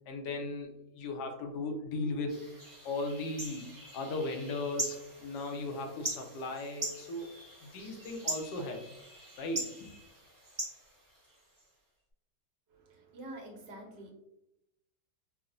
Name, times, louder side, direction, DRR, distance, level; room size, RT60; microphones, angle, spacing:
voice 1, 0.1-2.4 2.8-3.7 3.9-7.3 7.6-8.8 9.4-9.9, left 2 dB, 75° left, 4 dB, 1.2 m, -37 dB
sound 1, 2.3-11.7, right 2 dB, 25° right, 0.5 m, -42 dB
voice 2, 12.7-14.1, right 1 dB, 80° right, 1 dB, 1.4 m, -47 dB
4.6 x 2.1 x 2.5 m, 0.84 s
omnidirectional pair, 1.9 m